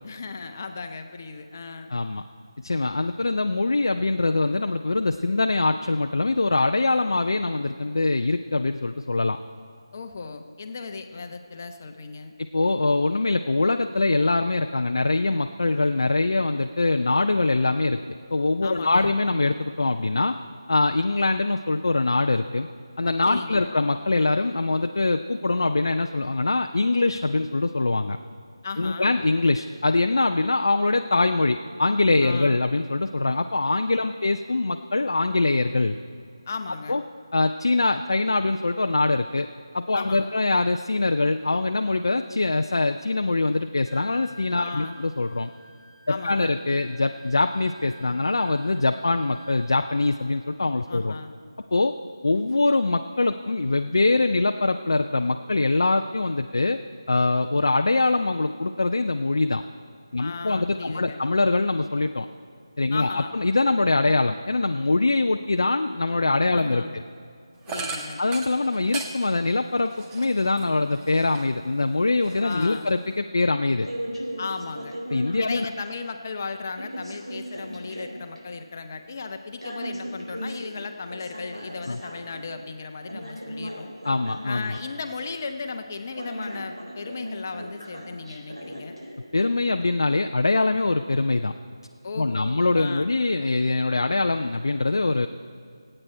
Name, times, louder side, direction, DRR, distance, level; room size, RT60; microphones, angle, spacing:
voice 1, 0.0-1.9 9.9-12.3 18.6-19.1 23.2-23.7 28.6-29.1 32.2-32.6 36.5-37.0 39.9-40.3 44.6-45.0 46.1-46.5 50.9-51.3 60.2-61.2 62.9-63.4 66.5-67.0 67.7-68.2 72.4-72.9 74.4-75.0 75.4-83.9 84.4-89.0 92.0-93.1, left 4 dB, 30° left, 6 dB, 0.9 m, -36 dB
voice 2, 1.9-2.2 2.6-9.4 12.4-20.4 20.7-22.7 23.0-28.2 28.8-36.0 36.9-37.0 37.3-39.5 39.7-45.5 46.1-51.1 51.7-51.9 52.2-56.8 57.1-59.6 60.1-62.3 62.8-66.8 68.2-73.9 75.1-75.7 81.9-82.0 84.0-84.8 89.3-91.6 92.2-95.3, left 2 dB, 55° left, 6 dB, 0.5 m, -23 dB
Wind instrument woodwind instrument, 43.8-50.1, right 1 dB, 40° right, 3.2 m, -49 dB
sound 1, 67.7-71.6 72.0-73.2, right 3 dB, 10° right, 0.6 m, -38 dB
sound 2, 72.3-72.8 73.8-75.7 76.8-78.4 79.6-82.4 83.1-85.2 86.1-89.4, equal, 80° right, 4.3 m, -37 dB
25.5 x 8.9 x 4.4 m, 2.3 s
figure-of-eight pair, 160°, 3 cm